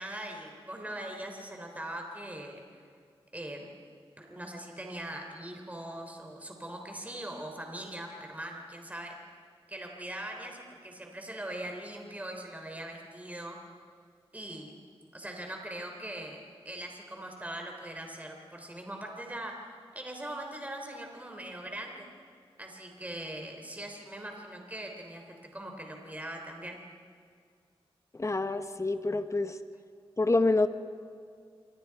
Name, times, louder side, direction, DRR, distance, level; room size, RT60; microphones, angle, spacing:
voice 1, 0.0-2.6 3.3-3.7 4.2-9.2 9.7-13.6 14.3-14.8 15.1-19.5 19.9-22.1 22.6-26.8, right 1 dB, 15° right, 2 dB, 3.5 m, -41 dB
voice 2, 28.1-29.6 30.2-30.7, left 2 dB, 30° left, 9 dB, 1.2 m, -27 dB
27.5 x 25.0 x 4.8 m, 2.2 s
wide cardioid pair, 85°, 10 cm